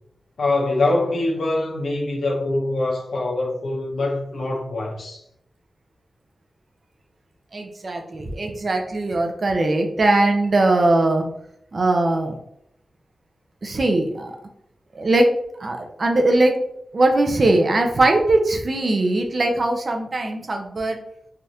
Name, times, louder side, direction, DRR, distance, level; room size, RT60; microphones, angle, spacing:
voice 1, 0.4-5.2, left 2 dB, 70° left, 0.7 m, -24 dB
voice 2, 7.5-11.3 11.7-12.4 13.6-14.4 15.0-15.3 15.6-16.5 16.9-21.0, right 2 dB, 40° right, 0.5 m, -20 dB
3.3 x 2.4 x 2.7 m
wide cardioid pair, 160°, 0 cm